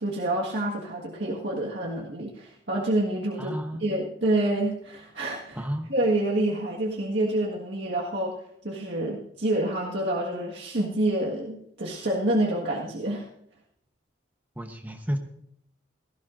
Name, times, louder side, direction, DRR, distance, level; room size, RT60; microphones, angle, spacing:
voice 1, 0.0-3.5 3.8-5.6 5.9-8.4 8.6-13.3, right 1 dB, 65° right, -3 dB, 1.7 m, -27 dB
voice 2, 3.4-3.8 5.5-5.9 14.6-15.2, equal, 10° right, 5 dB, 1.0 m, -31 dB
18.0 x 15.0 x 2.6 m, 0.71 s
head